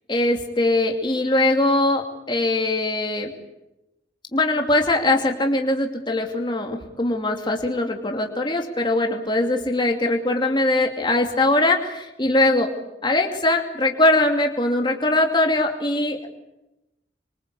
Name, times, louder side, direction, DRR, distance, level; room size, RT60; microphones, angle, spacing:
voice 1, 0.1-3.3 4.3-12.7 13.0-16.3, left 2 dB, 25° left, 3 dB, 2.8 m, -21 dB
27.0 x 24.5 x 8.4 m, 0.90 s
head